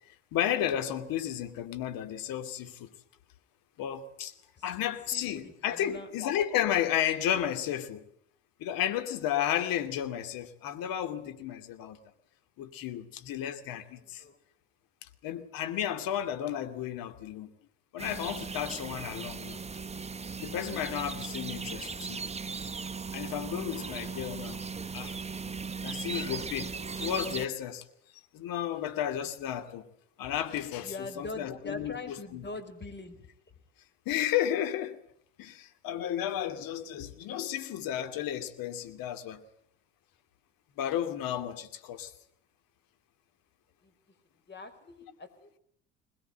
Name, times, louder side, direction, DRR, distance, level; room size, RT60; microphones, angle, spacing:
voice 1, 0.3-2.9 3.8-4.3 4.6-8.0 8.6-12.0 12.6-14.2 15.2-17.5 17.9-19.6 20.4-22.2 23.1-24.6 24.9-25.2 25.8-27.8 28.3-29.9 30.2-32.5 34.1-35.0 35.4-39.4 40.8-42.1, left 10 dB, 60° left, 2.5 m, -33 dB
voice 2, 5.1-6.1 14.0-14.4 30.8-33.2 43.8-43.9 44.5-45.6, left 3 dB, 25° left, 4.9 m, -42 dB
sound 1, 18.0-27.5, right 5 dB, 15° right, 1.0 m, -38 dB
22.0 x 20.5 x 9.0 m
hypercardioid pair, 65°, 39 cm